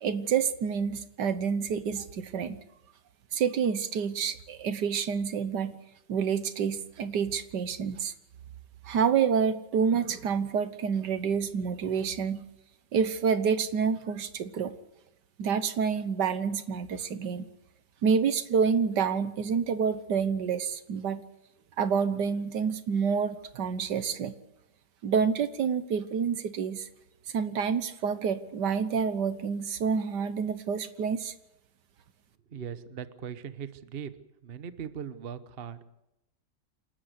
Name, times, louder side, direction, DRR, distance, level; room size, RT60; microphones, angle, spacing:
voice 1, 0.0-2.6 3.3-5.8 6.1-8.1 8.9-12.4 12.9-14.8 15.4-17.5 18.0-21.2 21.8-24.4 25.0-26.9 27.3-31.3, right 6 dB, 70° right, 12 dB, 1.7 m, -28 dB
voice 2, 32.5-34.1 34.4-35.8, right 8 dB, 40° right, 12 dB, 1.0 m, -39 dB
28.5 x 12.5 x 8.1 m, 0.90 s
omnidirectional pair, 1.9 m